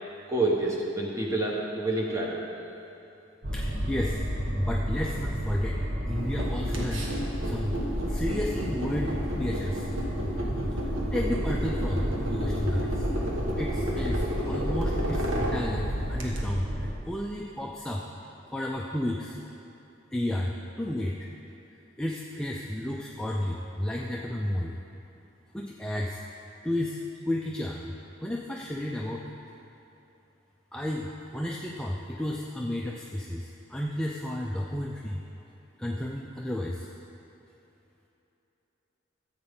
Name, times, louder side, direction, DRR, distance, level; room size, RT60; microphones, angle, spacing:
voice 1, 0.3-2.4, right 2 dB, 15° right, -2 dB, 1.1 m, -28 dB
sound 1, 3.4-16.9, equal, 45° right, 1.1 m, -31 dB
voice 2, 3.5-4.2 4.6-5.8 6.1-7.1 7.4-7.8 8.1-9.9 11.1-13.1 13.5-18.0 18.5-19.4 20.1-21.2 22.0-24.8 25.5-26.2 26.6-27.0 27.3-27.9 28.2-29.2 30.7-35.2 35.8-36.9, left 1 dB, 5° left, -2 dB, 0.4 m, -32 dB
sound 2, 6.1-16.4, equal, 80° right, 1.4 m, -33 dB
13.5 x 8.0 x 3.7 m, 2.9 s
head